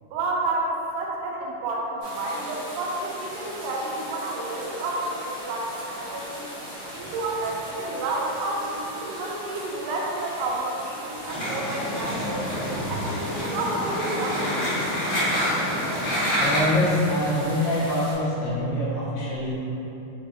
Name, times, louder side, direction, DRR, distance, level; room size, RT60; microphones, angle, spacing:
voice 1, 0.1-6.5 6.9-12.5 12.9-14.8, right 2 dB, 85° right, -2 dB, 2.6 m, -30 dB
sound 1, 2.0-18.1, equal, 50° right, 1.9 m, -39 dB
sound 2, 11.3-16.6, equal, 65° left, 2.0 m, -27 dB
voice 2, 12.4-13.1 16.4-19.7, left 1 dB, 80° left, -8 dB, 2.9 m, -26 dB
7.2 x 2.4 x 2.6 m, 3.0 s
omnidirectional pair, 4.7 m